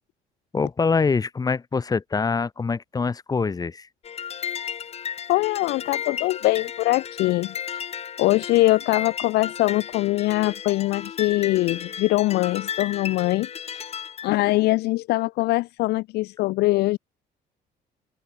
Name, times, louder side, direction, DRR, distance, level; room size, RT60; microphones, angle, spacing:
voice 1, 0.5-3.9, left 4 dB, 20° left, 1.2 m, -24 dB
sound 1, 4.0-14.3, left 8 dB, 40° left, 0.8 m, -34 dB
voice 2, 5.3-7.5 8.2-13.5 13.7-13.8 14.2-17.0, left 19 dB, 75° left, 0.4 m, -22 dB
cardioid pair, 110°, 17 cm